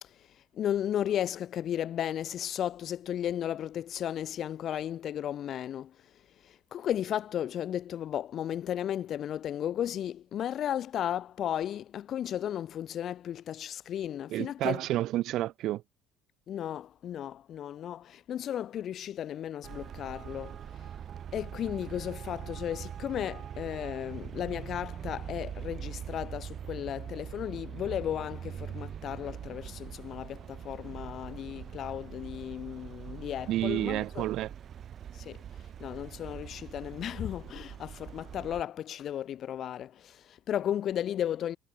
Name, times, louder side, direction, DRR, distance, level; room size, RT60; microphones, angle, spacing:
voice 1, 0.0-14.8 16.5-20.9 21.3-34.3 35.1-35.4 35.8-41.6, left 10 dB, 50° left, 2.2 m, -35 dB
voice 2, 14.3-15.8 33.5-34.5, right 14 dB, 65° right, 3.7 m, -30 dB
Traffic noise roadway noise, 19.6-38.6, right 9 dB, 45° right, 2.9 m, -42 dB
supercardioid pair, 105°, 0 cm